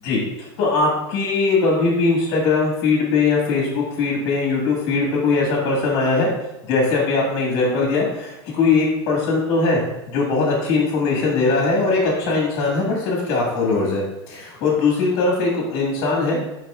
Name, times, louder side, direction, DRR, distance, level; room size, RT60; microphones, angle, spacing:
voice 1, 0.0-6.3 6.6-9.8 10.1-16.4, left 3 dB, 50° left, -2 dB, 1.8 m, -20 dB
10.5 x 4.3 x 2.4 m, 0.97 s
hypercardioid pair, 115°, 14 cm